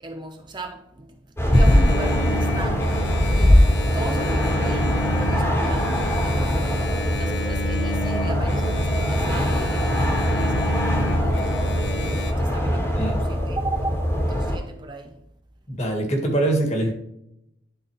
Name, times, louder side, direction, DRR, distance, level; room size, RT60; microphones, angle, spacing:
voice 1, 0.0-1.2 1.5-2.9 3.3-6.8 7.2-15.2, right 2 dB, 25° right, 0.7 m, -36 dB
sound 1, 1.4-14.6, equal, 15° left, 1.6 m, -21 dB
Engine, 1.5-12.3, left 1 dB, 75° left, 0.9 m, -31 dB
voice 2, 15.7-16.9, right 1 dB, 40° left, 1.8 m, -23 dB
11.5 x 4.0 x 3.2 m
head